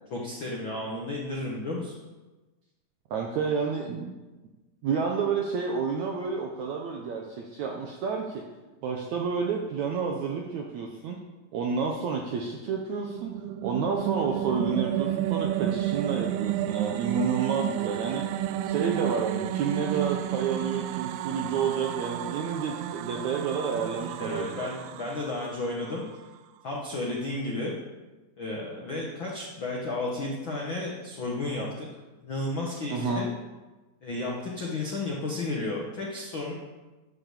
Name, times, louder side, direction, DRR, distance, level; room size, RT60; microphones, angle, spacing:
voice 1, 0.1-2.0 24.2-26.0 26.6-27.7 28.4-31.9 32.2-33.3 34.0-36.5, left 2 dB, 65° left, -2 dB, 1.2 m, -32 dB
voice 2, 3.1-4.1 4.8-8.4 8.8-11.2 11.5-13.3 13.6-18.2 18.6-24.7 32.9-33.2, right 5 dB, 75° right, 1 dB, 1.7 m, -30 dB
sound 1, 12.8-26.2, right 13 dB, 90° right, 2.6 m, -31 dB
12.0 x 6.4 x 7.3 m, 1.2 s
omnidirectional pair, 4.5 m